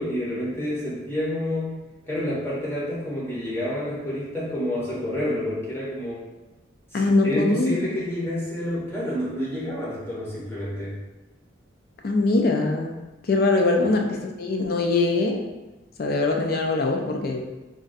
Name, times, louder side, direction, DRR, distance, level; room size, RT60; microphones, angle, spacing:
voice 1, 0.0-1.7 2.0-6.3 6.9-11.0 13.8-14.0, left 1 dB, 15° left, -8 dB, 0.7 m, -29 dB
voice 2, 6.9-7.8 12.0-12.9 13.2-15.4 16.0-17.4, left 3 dB, 55° left, 2 dB, 0.4 m, -22 dB
2.5 x 2.2 x 3.9 m, 1.1 s
head